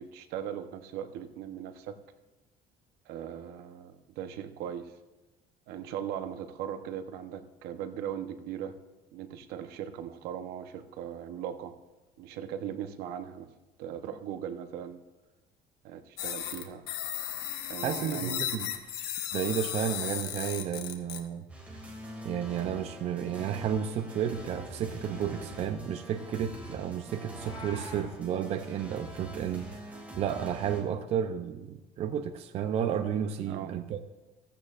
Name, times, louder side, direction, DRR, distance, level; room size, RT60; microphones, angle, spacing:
voice 1, 0.0-2.0 3.0-4.9 5.7-8.8 9.1-11.7 12.2-13.5 13.8-15.0 15.8-16.9 17.7-18.5 33.5-33.7, right 9 dB, 70° right, 8 dB, 0.9 m, -39 dB
sound 1, 16.2-21.2, left 11 dB, 85° left, 1.2 m, -35 dB
voice 2, 17.8-18.7 19.3-21.4 22.2-34.0, right 9 dB, 40° right, 7 dB, 0.5 m, -32 dB
sound 2, 21.5-30.8, right 1 dB, 10° right, 2.3 m, -44 dB
Meow, 27.3-28.1, left 2 dB, 30° left, 3.0 m, -45 dB
15.0 x 15.0 x 2.5 m, 1.1 s
cardioid pair, 175°, 17 cm